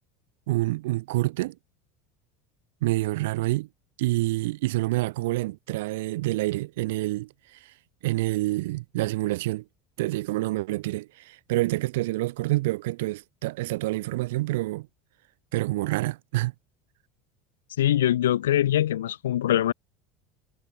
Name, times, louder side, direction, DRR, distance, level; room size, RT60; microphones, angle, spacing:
voice 1, 0.5-1.6 2.8-3.7 4.0-7.7 8.0-9.6 10.0-14.9 15.5-16.5, right 19 dB, 65° right, 1.3 m, -27 dB
voice 2, 17.8-19.7, left 12 dB, 75° left, 0.3 m, -23 dB
figure-of-eight pair, 70°, 0 cm